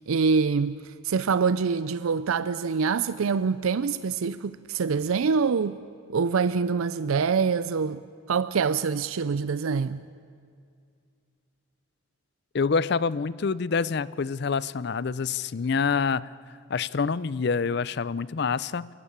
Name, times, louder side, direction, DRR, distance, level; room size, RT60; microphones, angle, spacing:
voice 1, 0.1-5.7 6.1-10.0, right 5 dB, 85° right, 0.5 m, -25 dB
voice 2, 12.5-16.3 16.7-18.9, left 5 dB, 50° left, 0.4 m, -26 dB
29.5 x 12.0 x 8.6 m
head